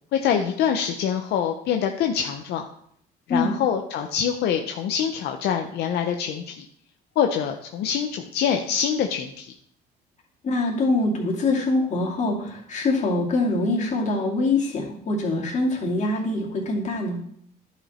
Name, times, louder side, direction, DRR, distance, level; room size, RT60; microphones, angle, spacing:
voice 1, 0.1-2.6 3.3-6.7 7.2-9.5, left 8 dB, 75° left, 4 dB, 0.7 m, -25 dB
voice 2, 10.4-17.2, left 2 dB, 45° left, -2 dB, 2.6 m, -24 dB
11.0 x 5.1 x 4.3 m, 0.67 s
cardioid pair, 110°, 17 cm